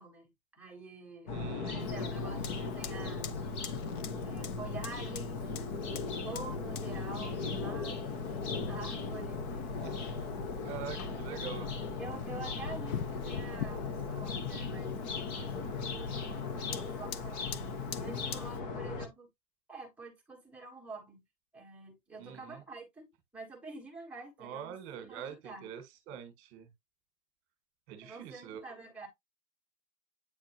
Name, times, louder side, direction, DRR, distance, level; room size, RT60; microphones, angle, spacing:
voice 1, 0.0-1.3 1.6-3.3 4.2-9.7 11.1-11.6 12.0-15.0 15.3-17.7 18.0-19.3 19.7-21.2 21.5-23.1 23.3-25.7 28.0-29.1, right 3 dB, 5° right, 1.4 m, -47 dB
sound 1, 1.3-19.1, left 4 dB, 25° left, 1.0 m, -37 dB
voice 2, 1.3-1.9 9.8-10.2 10.6-11.7 22.2-22.6 24.4-26.7 27.9-28.6, right 8 dB, 25° right, 1.7 m, -45 dB
Fire, 1.8-18.6, left 8 dB, 60° left, 1.0 m, -47 dB
9.0 x 4.3 x 2.9 m
supercardioid pair, 175°, 49 cm